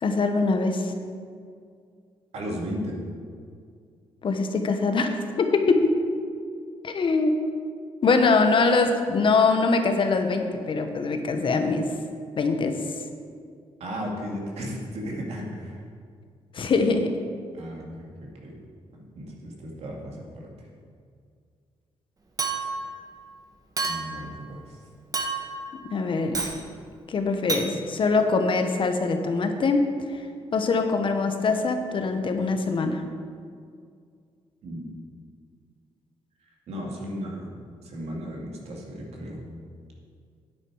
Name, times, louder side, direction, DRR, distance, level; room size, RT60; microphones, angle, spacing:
voice 1, 0.0-0.9 4.2-6.0 6.8-7.4 8.0-11.9 12.4-12.8 16.5-17.2 25.9-26.4 27.1-30.2 30.5-33.0, left 3 dB, 50° left, 6 dB, 1.1 m, -23 dB
voice 2, 2.3-3.0 13.8-15.8 17.5-18.6 18.9-20.5 23.9-24.8 34.6-34.8 36.7-37.5 37.8-39.4, equal, 75° right, -1 dB, 2.3 m, -35 dB
Chink clink, 22.4-22.9 23.8-24.2 25.1-25.6 26.3-26.6 27.5-27.7, right 3 dB, 35° right, 1.3 m, -29 dB
9.9 x 9.0 x 4.8 m, 2.2 s
cardioid pair, 85°, 11 cm